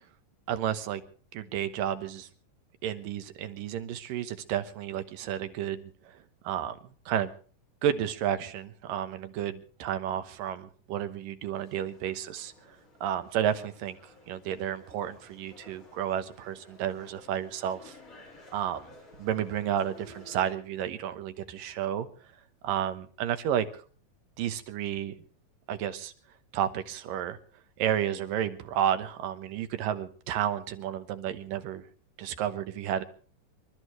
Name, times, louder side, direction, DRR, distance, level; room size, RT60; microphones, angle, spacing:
voice 1, 0.5-1.0 1.3-2.3 2.8-6.1 6.4-6.8 7.1-7.3 7.8-12.5 13.0-14.0 14.3-18.0 18.5-18.9 19.2-22.1 22.6-23.7 24.4-25.1 25.7-26.1 26.5-27.4 27.8-31.8 32.2-33.0, right 10 dB, 85° right, 10 dB, 2.8 m, -31 dB
sound 1, 11.6-20.5, left 2 dB, 45° left, 5.4 m, -54 dB
27.5 x 13.0 x 3.2 m, 0.42 s
omnidirectional pair, 3.9 m